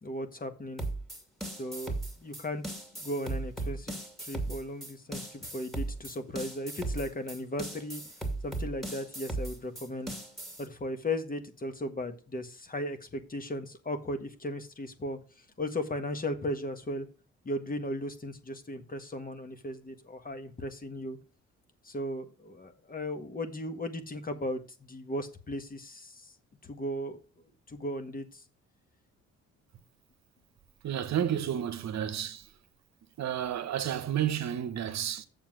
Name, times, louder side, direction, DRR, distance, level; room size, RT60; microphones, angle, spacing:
voice 1, 0.0-0.8 1.6-8.0 8.4-10.1 10.6-17.1 17.5-21.2 21.8-26.3 26.6-27.2 27.7-28.4, left 1 dB, 30° left, 1.6 m, -36 dB
sound 1, 0.8-10.7, right 2 dB, ahead, 2.4 m, -37 dB
voice 2, 30.8-32.5 33.2-35.3, right 10 dB, 60° right, 1.0 m, -31 dB
7.4 x 7.1 x 6.0 m
cardioid pair, 90°, 30 cm